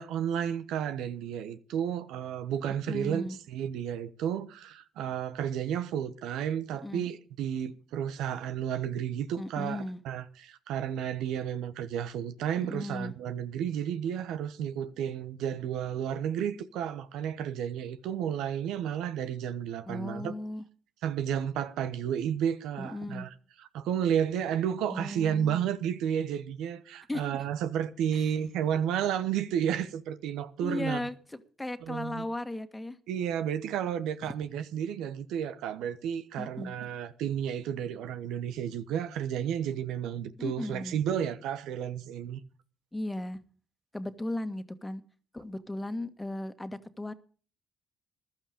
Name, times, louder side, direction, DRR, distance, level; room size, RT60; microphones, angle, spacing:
voice 1, 0.0-20.3 21.0-23.3 23.6-31.1 31.9-32.2 33.1-42.4, right 9 dB, 75° right, 0.9 m, -32 dB
voice 2, 2.7-3.4 6.8-7.1 9.4-10.0 12.6-13.1 19.9-20.6 22.8-23.3 24.9-25.6 27.1-27.3 28.1-28.3 30.6-33.0 34.2-34.3 36.4-36.7 40.4-41.0 42.9-43.4 43.9-45.0 45.3-47.1, left 1 dB, 15° left, 1.8 m, -36 dB
15.0 x 12.0 x 5.2 m
hypercardioid pair, 50°, 0 cm